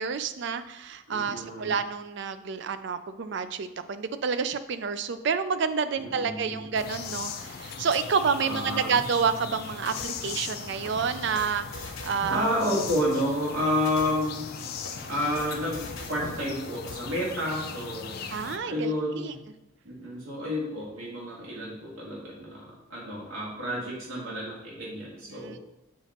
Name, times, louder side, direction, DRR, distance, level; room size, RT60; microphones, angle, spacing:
voice 1, 0.0-12.5 18.3-19.3 25.3-25.6, right 6 dB, 55° right, 11 dB, 0.3 m, -29 dB
voice 2, 1.1-1.7 6.0-6.7 8.4-8.9 12.3-14.6 15.1-18.2 18.7-19.4 19.8-25.6, left 1 dB, 80° right, -5 dB, 2.1 m, -30 dB
sound 1, 6.7-18.6, left 6 dB, 45° left, 0.4 m, -39 dB
sound 2, 9.0-9.2 9.9-12.5 12.9-13.2 13.7-16.5 16.9-17.0, left 2 dB, 75° left, 0.9 m, -42 dB
7.4 x 3.0 x 4.2 m, 0.89 s
head